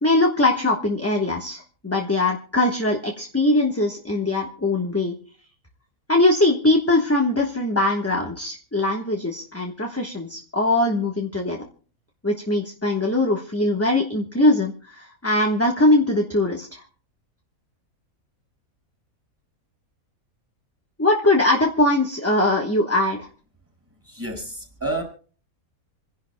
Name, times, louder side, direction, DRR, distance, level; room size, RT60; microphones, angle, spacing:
voice 1, 0.0-5.2 6.1-11.6 12.2-16.8 21.0-23.3, left 2 dB, 10° left, 0 dB, 1.1 m, -21 dB
voice 2, 24.0-25.0, right 2 dB, 10° right, 1 dB, 5.1 m, -29 dB
28.0 x 11.0 x 2.2 m, 0.40 s
omnidirectional pair, 1.5 m